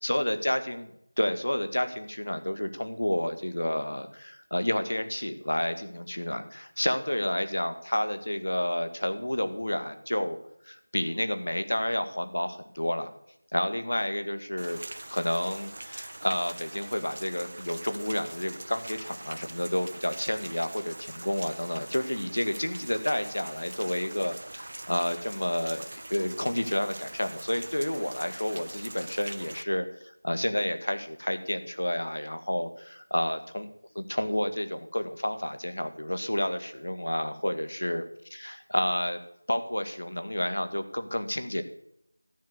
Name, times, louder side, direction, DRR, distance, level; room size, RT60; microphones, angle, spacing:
voice 1, 0.0-0.9 1.2-10.4 10.6-13.1 13.5-14.8 15.1-29.9 30.2-33.7 34.0-38.0 38.3-39.2 39.5-41.6, left 1 dB, 75° left, 8 dB, 1.8 m, -30 dB
Rain, 14.6-29.6, right 2 dB, 35° right, 0.5 m, -43 dB
13.5 x 7.6 x 6.5 m, 0.76 s
figure-of-eight pair, 180°, 0 cm